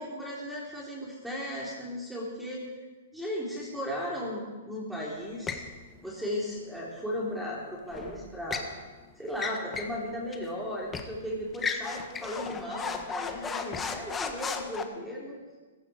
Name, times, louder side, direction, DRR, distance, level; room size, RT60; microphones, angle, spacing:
voice 1, 0.0-2.7 3.1-5.6 6.0-8.6 9.2-15.4, equal, 5° right, -5 dB, 3.4 m, -36 dB
sound 1, 5.5-5.7 7.9-8.7 9.3-10.0 10.3-10.4 10.9-11.1 11.5-14.8, left 5 dB, 15° left, 1.4 m, -35 dB
15.0 x 15.0 x 4.9 m, 1.3 s
hypercardioid pair, 130°, 0 cm